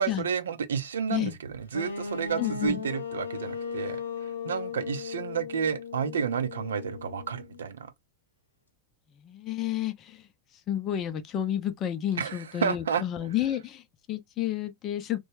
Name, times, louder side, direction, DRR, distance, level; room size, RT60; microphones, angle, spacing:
voice 1, 0.0-7.9 12.2-13.0, right 7 dB, 65° right, 0.5 m, -31 dB
sound 1, 1.7-7.6, left 6 dB, 75° left, 0.8 m, -37 dB
voice 2, 2.4-2.8 9.2-10.2 10.7-15.2, left 11 dB, 30° left, 0.5 m, -31 dB
3.1 x 2.2 x 3.0 m
figure-of-eight pair, 90°, 0 cm